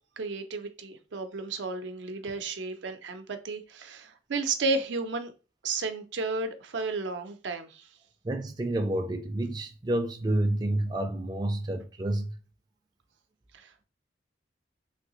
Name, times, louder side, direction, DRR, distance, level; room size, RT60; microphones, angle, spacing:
voice 1, 0.2-5.3 5.6-7.9 13.5-13.8, right 3 dB, 85° right, 0.5 m, -33 dB
voice 2, 8.2-12.3, right 1 dB, 20° right, 0.3 m, -29 dB
3.3 x 2.7 x 2.8 m
head